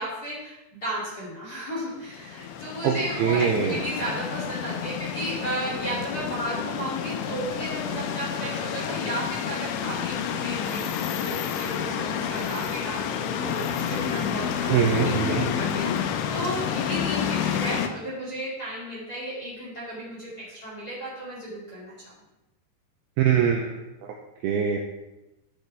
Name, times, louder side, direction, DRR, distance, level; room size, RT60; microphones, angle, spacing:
voice 1, 0.0-22.1, right 1 dB, 25° left, -8 dB, 2.3 m, -34 dB
sound 1, 2.1-17.9, left 8 dB, 90° left, 3.1 m, -29 dB
voice 2, 3.2-3.8 14.7-15.4 23.2-23.7 24.4-24.8, right 8 dB, 85° right, 1 dB, 2.3 m, -22 dB
12.0 x 6.6 x 3.4 m, 0.94 s
omnidirectional pair, 5.3 m